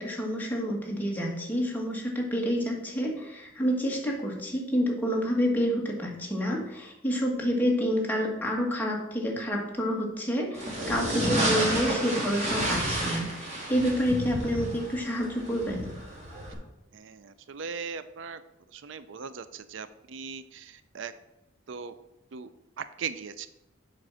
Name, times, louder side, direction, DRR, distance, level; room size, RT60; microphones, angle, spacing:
voice 1, 0.0-15.9, equal, 10° left, -1 dB, 1.6 m, -28 dB
sound 1, 10.5-16.5, right 1 dB, 35° right, 2.4 m, -30 dB
voice 2, 16.9-18.4 18.7-21.1 21.7-21.9 22.3-22.5 22.8-23.5, right 6 dB, 65° right, 13 dB, 0.4 m, -39 dB
7.5 x 5.3 x 6.1 m, 0.96 s
head